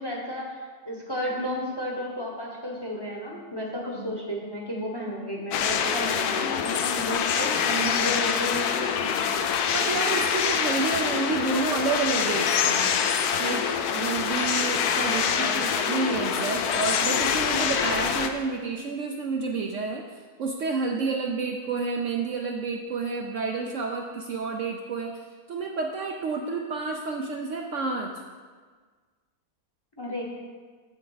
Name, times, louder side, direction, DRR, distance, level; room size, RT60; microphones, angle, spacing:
voice 1, 0.0-9.4 15.0-15.6 30.0-30.2, left 1 dB, 20° left, -2 dB, 0.9 m, -33 dB
sound 1, 5.5-18.3, left 7 dB, 75° left, 1.1 m, -25 dB
voice 2, 7.6-8.2 9.7-13.0 13.4-25.1 25.5-28.1, right 4 dB, 65° right, 1 dB, 0.8 m, -30 dB
7.6 x 7.1 x 4.0 m, 1.5 s
omnidirectional pair, 1.7 m